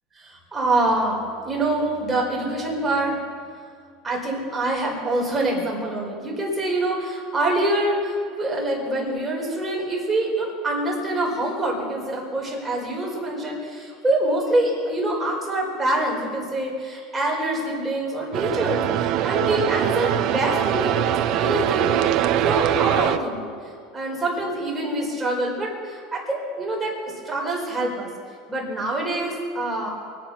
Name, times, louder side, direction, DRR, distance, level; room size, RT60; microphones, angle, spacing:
voice 1, 0.2-3.2 4.0-23.5 23.9-26.9 27.2-28.1 28.5-29.9, right 1 dB, 15° right, -3 dB, 4.9 m, -25 dB
sound 1, 18.3-23.2, right 11 dB, 50° right, 0.8 m, -22 dB
24.0 x 9.4 x 6.0 m, 2.2 s
supercardioid pair, 135°, 0 cm